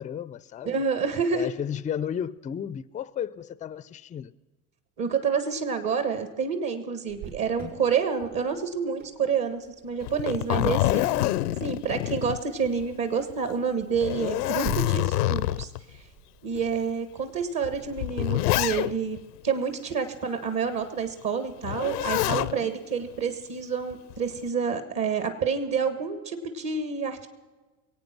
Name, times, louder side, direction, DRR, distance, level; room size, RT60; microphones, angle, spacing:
voice 1, 0.0-0.8 1.3-4.3 11.0-11.3 22.3-22.7, left 9 dB, 15° left, 0.4 m, -34 dB
voice 2, 0.6-1.5 5.0-11.0 11.6-15.7 16.4-19.2 19.4-27.3, right 6 dB, 45° right, 1.7 m, -28 dB
Cricket, 7.1-18.5, right 7 dB, 75° right, 5.3 m, -47 dB
Zipper (clothing), 10.0-12.9 13.3-13.4 13.9-15.8 16.6-16.7 17.6-19.2 21.6-22.5 23.9-24.4, left 15 dB, 80° left, 0.6 m, -26 dB
22.5 x 8.8 x 6.1 m
hypercardioid pair, 75°, 46 cm